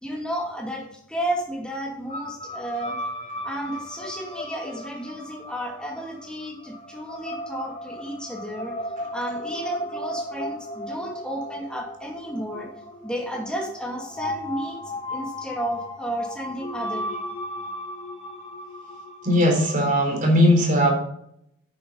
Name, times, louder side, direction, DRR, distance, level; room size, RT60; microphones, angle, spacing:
voice 1, 0.0-3.0 3.4-8.8 9.1-12.7 13.0-14.8 15.1-17.2, right 1 dB, 5° left, -1 dB, 2.4 m, -32 dB
sound 1, 2.1-20.2, left 1 dB, 30° left, 2.1 m, -36 dB
voice 2, 19.2-20.9, equal, 40° right, 1 dB, 3.8 m, -18 dB
10.0 x 9.4 x 4.0 m, 0.73 s
head